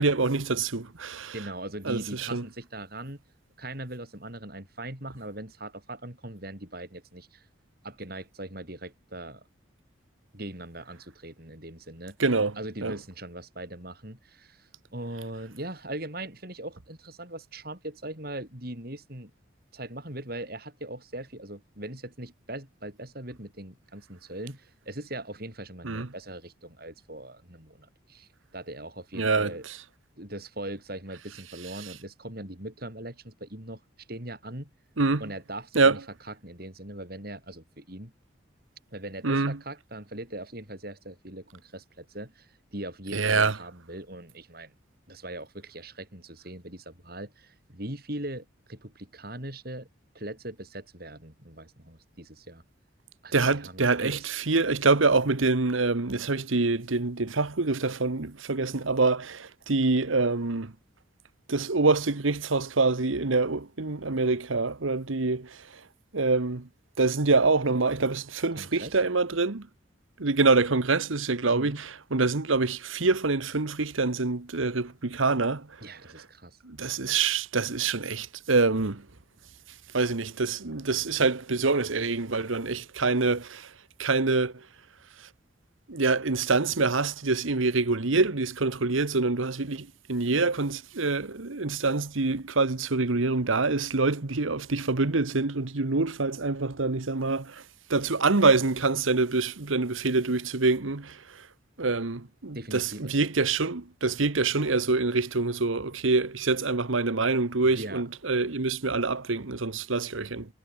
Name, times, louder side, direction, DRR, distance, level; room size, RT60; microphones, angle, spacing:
voice 1, 0.0-1.3 1.8-2.4 12.2-12.5 12.8-12.9 25.8-26.1 29.2-29.5 35.0-35.2 35.7-35.9 39.2-39.5 43.1-43.5 53.3-60.7 61.5-65.5 66.1-66.6 67.0-69.6 70.2-75.7 76.7-79.0 79.9-83.6 84.0-84.5 85.9-97.5 97.9-101.1 101.8-110.5, right 3 dB, 85° right, 1.3 m, -25 dB
voice 2, 1.3-3.2 3.6-7.4 7.8-9.4 10.3-12.2 12.6-19.3 19.7-29.7 30.2-33.8 34.1-34.7 35.2-38.1 38.9-44.7 45.1-49.9 50.1-52.6 53.2-54.3 68.6-69.0 71.4-71.8 75.8-76.6 102.5-103.1 107.6-108.0, right 1 dB, 50° right, 6.0 m, -40 dB
head